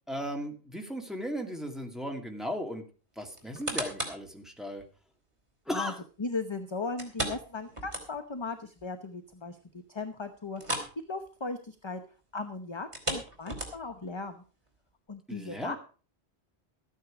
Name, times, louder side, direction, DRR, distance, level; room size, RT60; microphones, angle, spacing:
voice 1, 0.1-2.8 3.2-4.8 5.7-6.0 15.3-15.8, equal, ahead, 2 dB, 2.2 m, -36 dB
sound 1, 3.4-4.3 4.8-4.9 7.0-8.4 8.8-8.9 9.3-9.4 10.5-11.0 11.3-11.5 12.8-14.0 14.7-14.8, right 1 dB, 30° right, 2.8 m, -35 dB
voice 2, 6.2-9.6 9.9-10.8 11.1-12.0 12.3-14.4 15.1-15.8, left 3 dB, 30° left, 8 dB, 0.8 m, -37 dB
14.0 x 9.3 x 4.9 m, 0.37 s
omnidirectional pair, 1.1 m